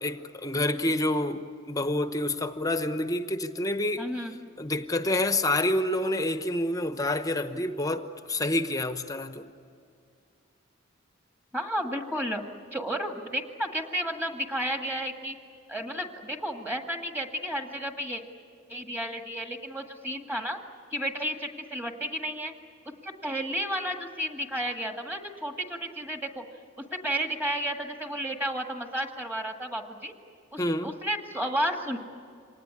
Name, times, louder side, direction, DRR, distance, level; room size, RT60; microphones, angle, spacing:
voice 1, 0.0-4.1 4.6-9.5 30.6-30.9, left 1 dB, 20° left, 9 dB, 0.9 m, -28 dB
voice 2, 4.0-4.4 11.5-12.4 12.7-15.4 15.7-18.2 18.7-20.6 20.9-22.5 23.0-26.4 26.8-30.1 30.5-32.0, equal, 10° right, 4 dB, 1.9 m, -32 dB
26.0 x 19.5 x 9.8 m, 2.4 s
head